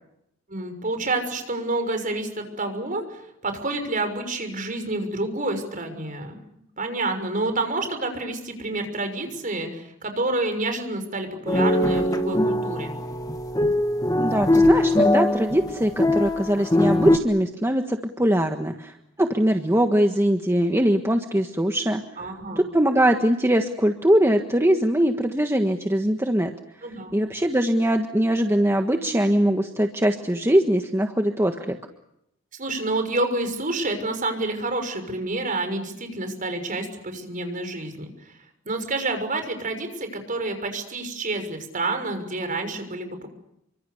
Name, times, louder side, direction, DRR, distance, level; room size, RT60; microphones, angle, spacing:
voice 1, 0.5-6.4 6.8-13.0 22.2-22.6 26.8-27.1 32.5-38.4 38.6-43.3, right 2 dB, 45° right, 7 dB, 6.4 m, -28 dB
sound 1, 11.5-17.2, left 1 dB, 20° left, 1.6 m, -21 dB
voice 2, 14.2-22.0 22.6-26.5 27.1-31.8, right 1 dB, 15° right, 4 dB, 1.5 m, -22 dB
29.0 x 25.0 x 6.8 m, 0.80 s
head